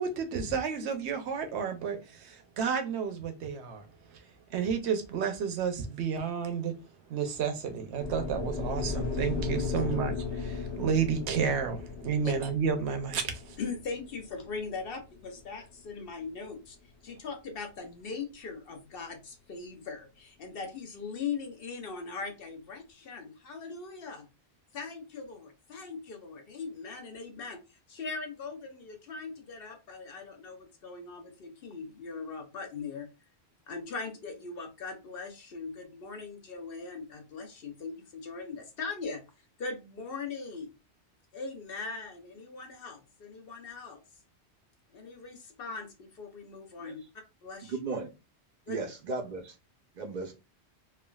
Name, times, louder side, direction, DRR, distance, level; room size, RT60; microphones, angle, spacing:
voice 1, 0.0-3.9 4.1-4.2 4.5-6.8 7.1-13.6, right 6 dB, 80° right, 0.9 m, -31 dB
sound 1, 8.0-16.2, left 4 dB, 90° left, 1.2 m, -36 dB
voice 2, 13.6-16.8 17.0-24.3 24.7-27.6 27.9-33.1 33.7-39.2 39.6-40.7 41.3-44.0 44.9-47.0 47.4-47.7 48.7-48.8, left 4 dB, 65° left, 0.8 m, -40 dB
voice 3, 47.6-48.1 48.7-49.5 49.9-50.3, right 3 dB, 50° right, 0.6 m, -35 dB
3.3 x 2.3 x 2.2 m
omnidirectional pair, 1.1 m